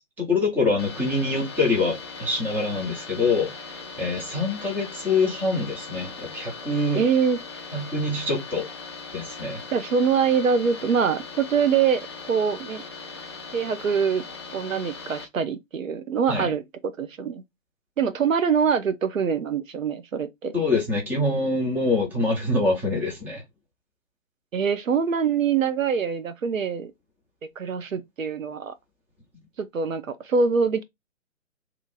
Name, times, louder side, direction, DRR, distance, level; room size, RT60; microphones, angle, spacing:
voice 1, 0.2-3.5 4.0-7.0 7.7-8.7 9.1-9.6 16.3-16.5 20.5-23.4, left 3 dB, 5° right, 0.7 m, -25 dB
sound 1, 0.8-15.3, left 4 dB, 20° left, 0.4 m, -39 dB
voice 2, 6.9-7.4 9.7-12.0 12.3-12.8 13.5-14.2 14.5-16.6 17.0-17.4 18.0-20.5 24.5-26.9 27.6-28.7 29.6-30.8, right 6 dB, 80° right, 0.7 m, -24 dB
2.9 x 2.5 x 4.0 m
figure-of-eight pair, 135°, 40 cm